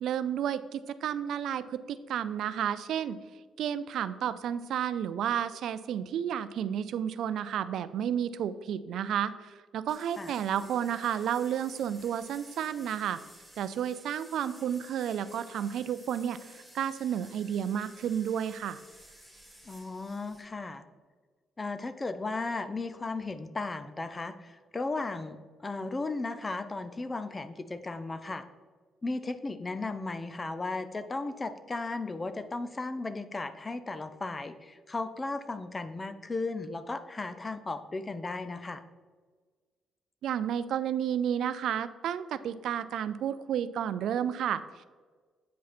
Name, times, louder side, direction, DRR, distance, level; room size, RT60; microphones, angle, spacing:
voice 1, 0.0-3.2 3.6-13.2 13.6-18.8 40.2-44.9, right 9 dB, 75° right, 14 dB, 0.3 m, -31 dB
sound 1, 9.9-20.4, equal, 5° left, 1.7 m, -54 dB
voice 2, 19.7-20.8 21.6-28.4 29.0-38.8, left 3 dB, 25° left, 11 dB, 0.5 m, -35 dB
8.0 x 5.1 x 4.2 m, 1.5 s
cardioid pair, 90°, 0 cm